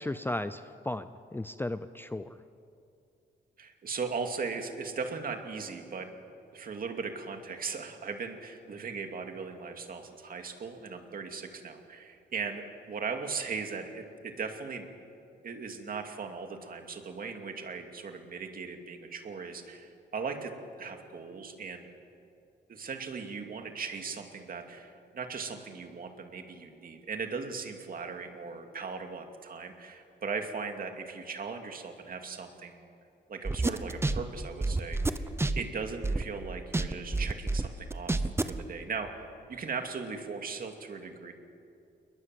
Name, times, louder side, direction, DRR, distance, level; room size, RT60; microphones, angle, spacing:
voice 1, 0.0-2.4, left 1 dB, 10° left, 12 dB, 0.5 m, -35 dB
voice 2, 3.6-6.1 6.5-14.9 15.4-20.5 20.8-21.9 22.7-32.9 33.3-35.3 35.5-41.3, right 5 dB, 50° right, 5 dB, 2.5 m, -38 dB
sound 1, 33.4-36.4 36.7-38.6, right 2 dB, 15° right, 0.9 m, -29 dB
28.5 x 21.5 x 7.8 m, 2.6 s
wide cardioid pair, 150°, 19 cm